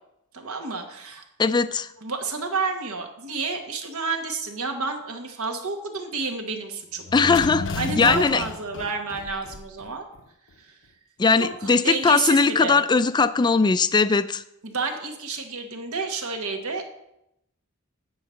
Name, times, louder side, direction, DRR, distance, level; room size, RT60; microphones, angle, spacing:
voice 1, 0.3-1.2 2.0-7.0 7.8-10.1 10.6-10.7 11.4-12.8 14.6-16.8, right 4 dB, 80° right, 4 dB, 1.4 m, -30 dB
voice 2, 1.4-1.9 7.1-8.4 11.2-14.4, left 4 dB, 20° left, 13 dB, 0.3 m, -20 dB
sound 1, 7.0-9.9 10.2-10.3, left 3 dB, 60° left, 0.6 m, -32 dB
9.3 x 4.8 x 6.9 m, 0.81 s
head